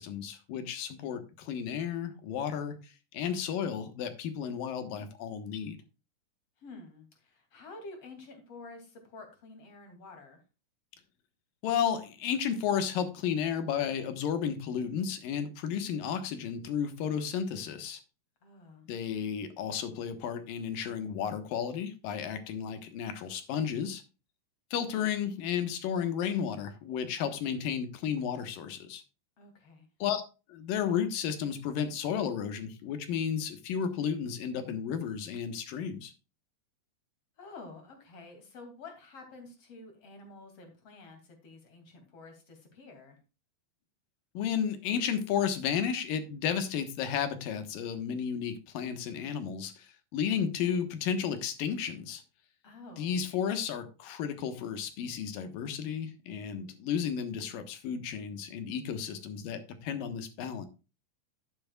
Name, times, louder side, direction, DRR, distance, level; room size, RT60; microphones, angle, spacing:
voice 1, 0.0-2.8 3.1-5.8 11.6-18.0 18.9-24.0 24.7-29.0 30.0-30.2 30.5-36.1 44.3-49.9 50.1-52.2 53.0-60.7, left 8 dB, 85° left, 9 dB, 3.1 m, -33 dB
voice 2, 6.6-10.4 18.4-18.9 29.4-29.9 37.4-43.2 52.6-53.2, left 3 dB, 45° left, 5 dB, 3.6 m, -49 dB
11.0 x 9.7 x 2.4 m, 0.31 s
omnidirectional pair, 3.8 m